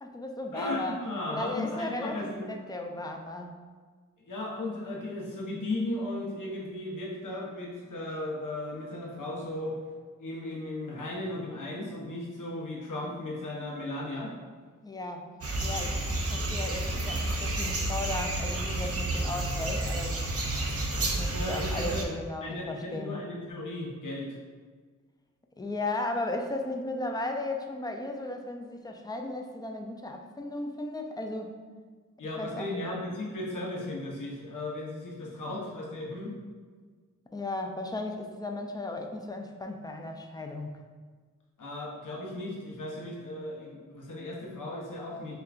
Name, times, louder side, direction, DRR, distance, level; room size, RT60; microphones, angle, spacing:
voice 1, 0.0-1.0 1.3-3.5 14.8-15.3 15.6-16.0 16.3-20.3 21.0-23.2 25.6-31.6 32.4-32.9 37.3-40.8, left 2 dB, 15° left, 3 dB, 0.4 m, -35 dB
voice 2, 0.5-2.5 4.2-9.8 10.2-14.3 21.3-22.1 22.4-24.4 32.2-36.3 41.6-45.3, left 1 dB, 85° left, -3 dB, 0.9 m, -36 dB
sound 1, 15.4-22.0, right 1 dB, 50° right, 0.6 m, -30 dB
6.4 x 2.3 x 2.4 m, 1.5 s
wide cardioid pair, 90°, 31 cm